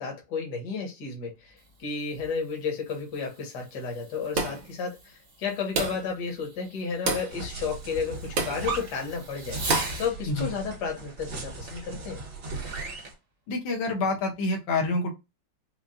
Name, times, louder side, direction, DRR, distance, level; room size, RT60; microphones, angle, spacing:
voice 1, 0.0-9.6 10.0-12.2, left 5 dB, 55° left, 1.8 m, -32 dB
Fireworks, 1.3-10.1 11.7-11.8 12.3-13.1, right 2 dB, 35° right, 1.3 m, -43 dB
sound 1, 4.4-4.7 5.8-6.1 7.1-7.4 8.4-8.6 9.7-10.0, right 3 dB, 85° right, 1.9 m, -28 dB
sound 2, 7.3-13.1, right 3 dB, 65° right, 2.2 m, -37 dB
voice 2, 13.5-15.1, left 3 dB, 85° left, 1.8 m, -27 dB
5.6 x 2.4 x 2.4 m
omnidirectional pair, 2.1 m